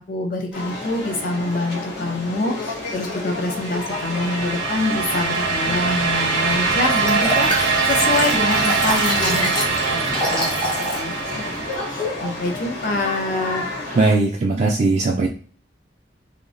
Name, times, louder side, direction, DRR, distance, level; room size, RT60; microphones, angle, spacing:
voice 1, 0.0-9.5 9.9-10.0 10.3-10.7 11.0-13.7, left 2 dB, 50° left, 3 dB, 0.6 m, -26 dB
sound 1, 0.5-14.2, left 2 dB, 75° left, 1.0 m, -31 dB
Horny Hobbit, 3.3-12.2, right 4 dB, 80° right, 0.7 m, -23 dB
Liquid, 6.9-11.1 11.5-11.6, equal, 30° left, 1.1 m, -27 dB
voice 2, 13.9-15.3, right 3 dB, 45° right, -1 dB, 0.3 m, -18 dB
2.8 x 2.1 x 2.5 m, 0.43 s
head